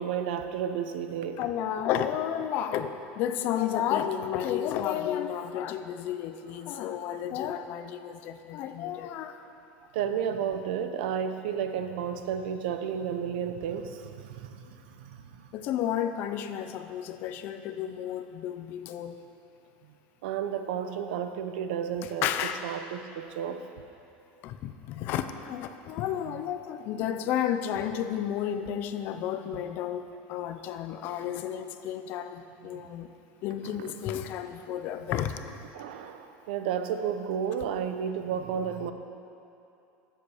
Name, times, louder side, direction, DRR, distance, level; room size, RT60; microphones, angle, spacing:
voice 1, 0.0-1.4 6.7-6.9 7.3-7.4 9.9-15.5 20.2-22.3 22.6-23.7 29.6-29.8 32.6-33.0 33.6-33.9 35.7-38.9, right 8 dB, 75° right, 8 dB, 0.7 m, -32 dB
voice 2, 1.4-9.4 15.5-19.2 22.2-22.6 24.4-33.1 33.4-35.4, left 10 dB, 40° left, 9 dB, 0.5 m, -32 dB
13.0 x 7.7 x 4.9 m, 2.7 s
cardioid pair, 180°, 5 cm